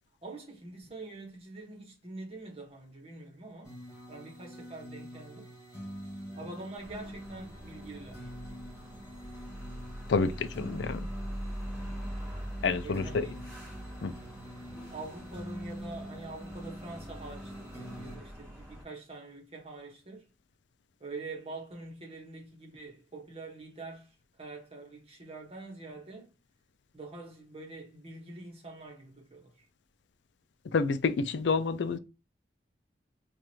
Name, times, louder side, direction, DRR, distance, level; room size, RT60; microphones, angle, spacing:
voice 1, 0.2-3.7 4.1-5.5 6.4-8.3 12.8-13.3 14.9-20.3 21.0-26.3 26.9-29.7, right 2 dB, 35° right, 1.2 m, -45 dB
sound 1, 3.6-18.2, equal, 20° left, 2.1 m, -45 dB
sound 2, 6.8-18.8, equal, ahead, 2.4 m, -43 dB
voice 2, 10.1-11.1 12.6-13.3 14.0-14.1 30.7-32.0, left 4 dB, 85° left, 0.4 m, -28 dB
4.8 x 2.5 x 2.8 m
head